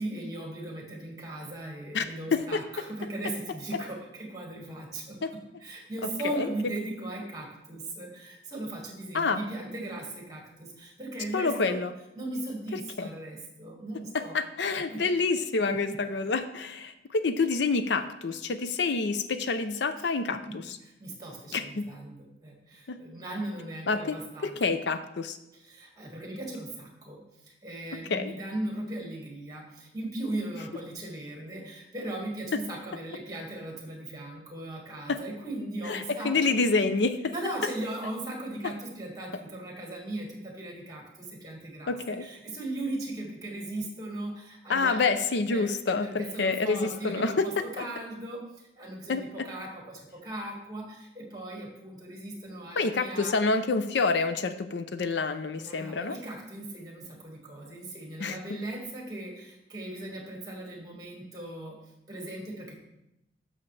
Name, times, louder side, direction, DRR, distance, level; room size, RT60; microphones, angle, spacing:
voice 1, 0.0-11.8 12.2-14.4 14.9-15.0 15.7-16.0 20.5-20.6 21.0-24.6 25.6-27.2 27.6-36.6 37.3-41.0 41.4-45.1 45.5-45.7 46.0-48.4 48.8-53.3 55.5-61.8 62.1-62.8, right 1 dB, 20° right, 0 dB, 1.8 m, -38 dB
voice 2, 11.3-11.9 12.7-13.1 14.1-20.8 21.5-21.8 22.9-23.0 23.9-24.2 24.4-25.4 28.1-28.3 35.1-35.2 35.9-37.3 41.9-42.2 44.7-47.8 49.1-49.2 52.8-56.2 58.2-58.4, left 4 dB, 70° left, 10 dB, 0.5 m, -28 dB
11.5 x 6.4 x 3.3 m, 0.88 s
head